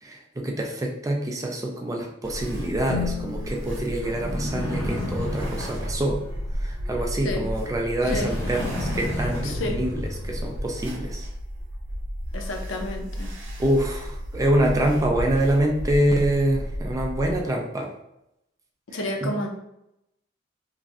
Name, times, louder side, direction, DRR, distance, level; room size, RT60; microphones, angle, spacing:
voice 1, 0.0-6.2 6.6-11.3 13.6-17.9 19.2-19.3, right 1 dB, 15° right, 1 dB, 0.4 m, -26 dB
sound 1, 2.2-17.4, equal, 75° right, 0.7 m, -33 dB
sound 2, 2.8-5.3, left 6 dB, 50° left, 0.7 m, -36 dB
sound 3, 4.0-7.1 8.0-10.7, left 1 dB, 15° left, 0.7 m, -32 dB
voice 2, 8.0-8.3 9.4-9.8 12.3-13.3 18.9-19.5, left 1 dB, 85° left, 2 dB, 0.5 m, -30 dB
3.0 x 2.5 x 2.4 m, 0.84 s
head